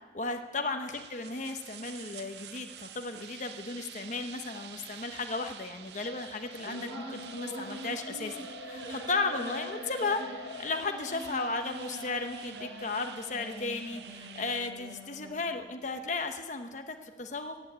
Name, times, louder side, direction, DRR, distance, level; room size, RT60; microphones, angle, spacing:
voice 1, 0.1-10.2 10.6-17.6, left 3 dB, 45° left, 6 dB, 1.0 m, -35 dB
sound 1, 0.9-14.7, right 10 dB, 70° right, 0.5 m, -48 dB
Race car auto racing, 4.6-15.6, left 5 dB, 75° left, 1.1 m, -49 dB
sound 2, 6.6-15.6, right 1 dB, 90° right, 5.3 m, -44 dB
15.5 x 9.1 x 8.5 m, 1.3 s
head